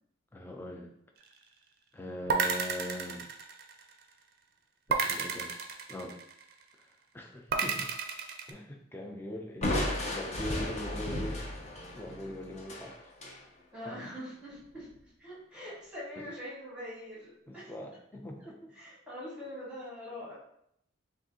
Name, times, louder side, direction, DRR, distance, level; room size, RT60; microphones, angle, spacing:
voice 1, 0.3-0.9 1.9-3.3 4.9-5.5 5.9-6.2 6.8-7.9 8.5-11.5 11.9-13.0 16.2-16.3 17.5-18.7, left 1 dB, 10° left, 2 dB, 0.4 m, -41 dB
sound 1, 2.3-4.0 4.9-6.5 7.5-8.5, right 5 dB, 50° right, 0.4 m, -31 dB
Crushing, 9.6-13.4, left 1 dB, 35° left, 0.7 m, -34 dB
voice 2, 13.7-17.7 18.4-20.3, left 1 dB, 5° right, -8 dB, 1.5 m, -44 dB
6.1 x 2.4 x 2.7 m, 0.74 s
head